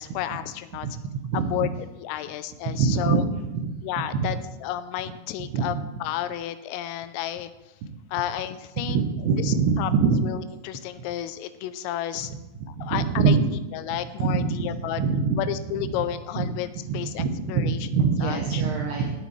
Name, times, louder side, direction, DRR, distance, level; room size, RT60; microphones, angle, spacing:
voice 1, 0.0-0.9 1.5-1.7 2.0-3.2 3.8-4.4 4.6-5.8 6.0-7.5 8.1-9.0 9.4-9.9 10.2-12.3 12.7-13.4 13.7-15.0 15.4-16.7 16.9-17.9 18.2-18.6, left 12 dB, 85° left, 12 dB, 3.2 m, -31 dB
voice 2, 0.8-1.7 2.7-3.2 3.5-3.7 4.0-4.3 5.5-5.7 8.8-10.2 12.8-13.4 13.9-15.4 15.8-16.1 16.4-16.5 16.9-19.1, right 5 dB, 75° right, -1 dB, 2.5 m, -24 dB
17.5 x 7.9 x 3.2 m, 1.0 s
omnidirectional pair, 5.9 m